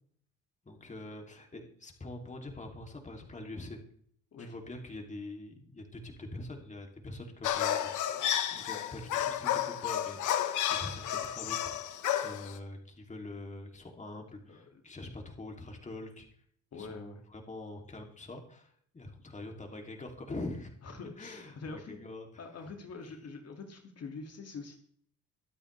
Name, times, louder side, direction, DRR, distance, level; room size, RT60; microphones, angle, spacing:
voice 1, 0.6-3.8 4.4-7.9 8.5-11.7 12.1-16.3 16.7-20.9 21.2-22.7, left 2 dB, 25° left, 2 dB, 2.9 m, -44 dB
sound 1, 7.4-12.6, left 10 dB, 80° left, 1.4 m, -32 dB
voice 2, 14.5-14.8 16.7-17.2 20.8-22.0 22.4-24.8, left 4 dB, 55° left, 3 dB, 2.4 m, -45 dB
23.5 x 8.6 x 3.4 m, 0.64 s
cardioid pair, 90°, 30 cm